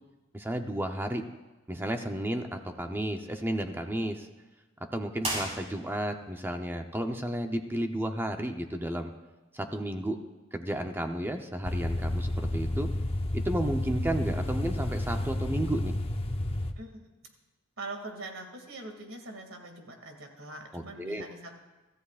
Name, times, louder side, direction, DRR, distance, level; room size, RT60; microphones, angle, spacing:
voice 1, 0.3-1.2 1.7-4.3 4.9-9.1 9.5-10.2 10.5-12.9 13.4-16.0 20.7-21.3, right 1 dB, 10° right, 5 dB, 0.8 m, -32 dB
sound 1, 5.2-6.2, right 1 dB, 30° right, 5.1 m, -35 dB
sound 2, 11.6-16.7, left 1 dB, 30° left, 0.8 m, -31 dB
voice 2, 16.8-17.1 17.8-21.5, right 2 dB, 90° right, 3 dB, 2.5 m, -43 dB
24.5 x 14.0 x 2.5 m, 1.2 s
head